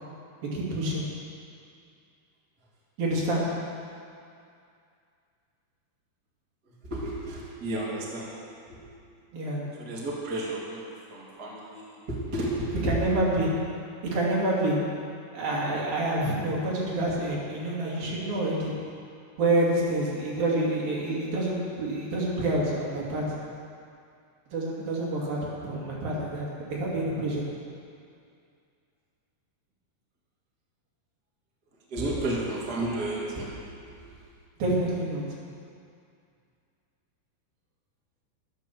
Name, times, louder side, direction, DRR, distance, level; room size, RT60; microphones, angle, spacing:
voice 1, 0.5-1.1 3.0-3.5 9.3-9.7 12.8-13.5 14.0-14.8 15.3-18.7 19.4-23.4 24.5-27.4 34.6-35.3, right 1 dB, 55° right, -5 dB, 3.9 m, -27 dB
voice 2, 6.8-8.4 8.7-8.9 9.8-13.0 31.9-33.5 33.9-34.1, right 1 dB, 30° right, -5 dB, 2.2 m, -32 dB
13.0 x 12.0 x 7.0 m, 2.4 s
omnidirectional pair, 5.3 m